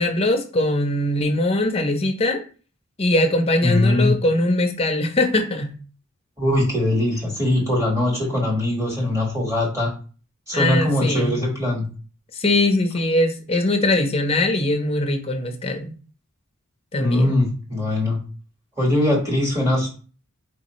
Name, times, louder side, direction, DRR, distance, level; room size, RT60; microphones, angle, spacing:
voice 1, 0.0-2.4 3.0-5.8 10.5-11.4 12.3-15.9 16.9-17.5, left 1 dB, 25° left, 4 dB, 0.6 m, -21 dB
voice 2, 3.6-4.1 6.4-9.9 10.5-11.9 17.0-18.2 18.8-19.9, left 1 dB, 15° right, -3 dB, 1.5 m, -21 dB
4.6 x 2.7 x 3.0 m, 0.37 s
head